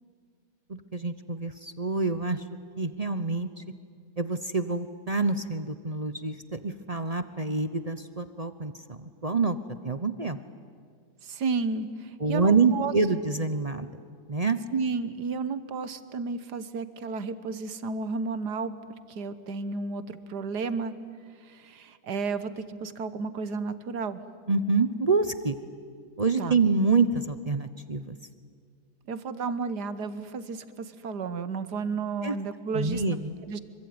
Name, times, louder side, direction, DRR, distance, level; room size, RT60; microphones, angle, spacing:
voice 1, 0.7-2.4 2.8-3.6 4.2-9.6 9.8-10.4 12.2-13.9 14.3-14.6 24.5-25.5 26.2-28.2 32.2-32.3 32.7-33.3, right 4 dB, 30° right, 11 dB, 0.7 m, -27 dB
voice 2, 11.2-12.9 14.7-18.7 19.1-20.9 21.4-24.2 26.4-26.6 29.1-33.0 33.5-33.6, right 4 dB, 75° right, 13 dB, 1.8 m, -32 dB
25.5 x 24.0 x 9.5 m, 2.2 s
omnidirectional pair, 1.8 m